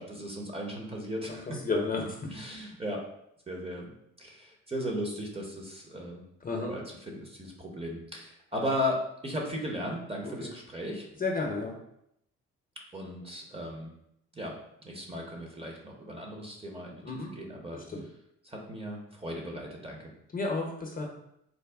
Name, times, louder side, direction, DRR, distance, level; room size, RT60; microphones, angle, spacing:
voice 1, 0.0-1.6 2.3-3.0 3.5-6.2 6.6-11.0 12.9-13.9 14.3-18.0 18.4-20.1, equal, 20° right, 0 dB, 0.8 m, -36 dB
voice 2, 1.7-2.1 6.4-6.7 11.2-11.7 17.0-17.3 20.3-21.1, left 3 dB, 30° left, 1 dB, 0.7 m, -30 dB
4.0 x 2.1 x 3.4 m, 0.77 s
cardioid pair, 90°, 30 cm